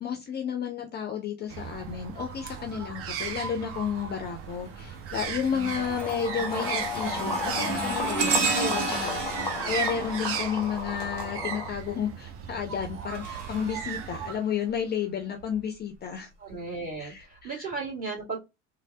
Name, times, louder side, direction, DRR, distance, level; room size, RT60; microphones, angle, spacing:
voice 1, 0.0-16.3 17.0-17.6, left 7 dB, 30° left, 5 dB, 0.5 m, -32 dB
sound 1, 1.5-14.4, right 7 dB, 40° right, 0.6 m, -37 dB
sound 2, 3.6-4.0 4.5-11.3 12.6-14.8 15.4-15.6 16.5-16.6, right 4 dB, 80° right, 0.9 m, -33 dB
sound 3, 5.6-11.7, left 3 dB, 10° left, 0.9 m, -34 dB
voice 2, 9.4-9.8 16.4-18.4, right 4 dB, 25° right, -2 dB, 1.8 m, -36 dB
3.1 x 2.1 x 2.6 m, 0.23 s
hypercardioid pair, 70°, 35 cm